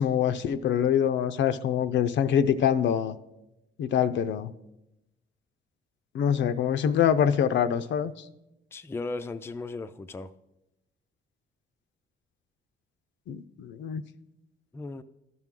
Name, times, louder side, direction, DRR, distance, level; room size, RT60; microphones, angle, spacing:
voice 1, 0.0-3.2 3.8-4.5 6.1-8.1 13.3-14.0, left 8 dB, 70° left, 0.5 m, -25 dB
voice 2, 8.7-10.3 14.7-15.0, left 3 dB, 10° left, 0.4 m, -36 dB
13.5 x 6.0 x 3.7 m
cardioid pair, 90°, 20 cm